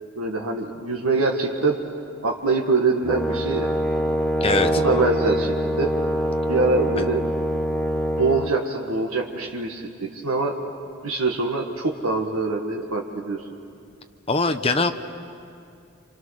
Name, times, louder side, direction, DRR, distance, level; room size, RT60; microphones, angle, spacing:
voice 1, 0.2-1.8 2.2-3.7 4.7-5.9 6.5-7.2 8.2-9.8 10.1-10.6 11.0-13.4, right 3 dB, 85° right, 0 dB, 1.7 m, -24 dB
Brass instrument, 3.0-8.5, equal, 5° left, 1.2 m, -24 dB
voice 2, 4.4-4.8 7.0-7.1 14.3-14.9, left 3 dB, 25° left, 7 dB, 0.9 m, -21 dB
28.5 x 26.0 x 6.5 m, 2.4 s
head